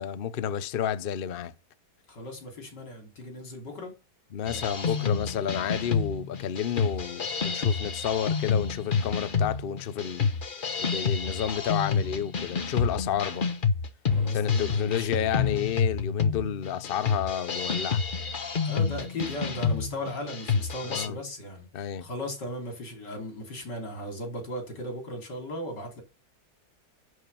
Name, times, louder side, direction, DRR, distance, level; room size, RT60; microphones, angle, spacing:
voice 1, 0.0-1.5 4.3-10.3 10.8-13.5 14.3-18.0 20.9-21.2 21.7-22.0, left 9 dB, 85° left, 0.5 m, -31 dB
voice 2, 2.1-4.0 4.4-5.1 14.1-15.3 18.6-26.0, left 1 dB, 70° left, 3.7 m, -37 dB
sound 1, 4.5-21.1, left 5 dB, 40° left, 0.9 m, -28 dB
11.0 x 5.0 x 6.8 m
omnidirectional pair, 1.9 m